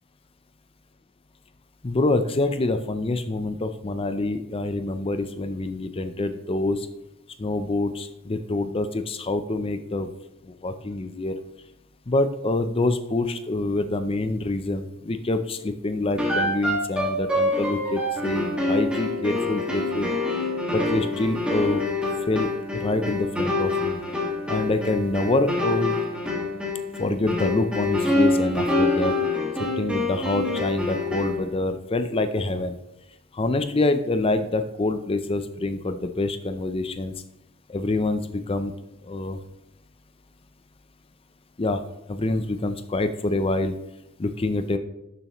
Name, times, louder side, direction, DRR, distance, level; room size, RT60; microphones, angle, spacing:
voice 1, 1.8-6.9 7.4-10.1 10.5-11.4 12.1-20.1 20.7-21.8 22.3-24.0 24.5-26.0 27.0-29.2 29.6-32.8 33.3-37.1 37.7-38.7 39.0-39.4 41.6-41.8 42.1-43.8 44.2-44.8, left 2 dB, 25° left, 10 dB, 0.5 m, -26 dB
sound 1, 16.2-31.5, left 2 dB, 5° right, 1.8 m, -26 dB
12.0 x 6.9 x 3.0 m, 0.87 s
head